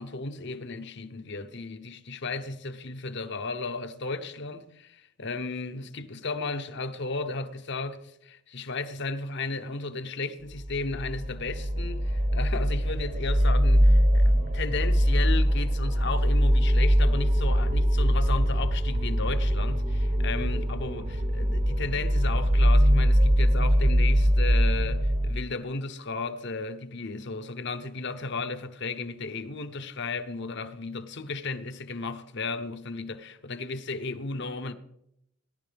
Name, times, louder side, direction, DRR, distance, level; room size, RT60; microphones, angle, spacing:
voice 1, 0.0-34.7, left 3 dB, 55° left, 0.8 m, -34 dB
sound 1, 10.5-25.3, equal, 35° right, 0.7 m, -22 dB
18.0 x 11.0 x 3.4 m
head